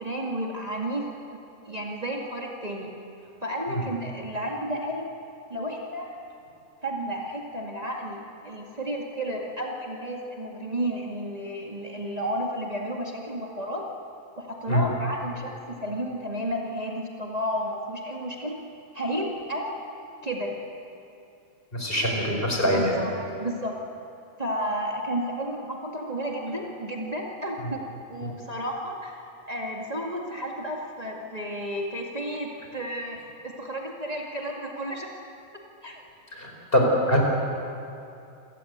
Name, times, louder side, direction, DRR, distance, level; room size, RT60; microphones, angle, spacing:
voice 1, 0.0-1.4 1.7-2.9 3.4-5.1 5.5-6.1 6.8-13.8 14.4-18.6 18.9-19.7 20.2-20.5 22.7-23.1 23.4-23.8 24.4-35.1 35.8-36.0, equal, 25° right, -2 dB, 2.2 m, -32 dB
voice 2, 21.7-23.0 27.6-27.7 28.2-28.3 36.3-37.2, equal, 35° left, 0 dB, 5.1 m, -24 dB
28.0 x 18.5 x 8.1 m, 2.6 s
omnidirectional pair, 1.6 m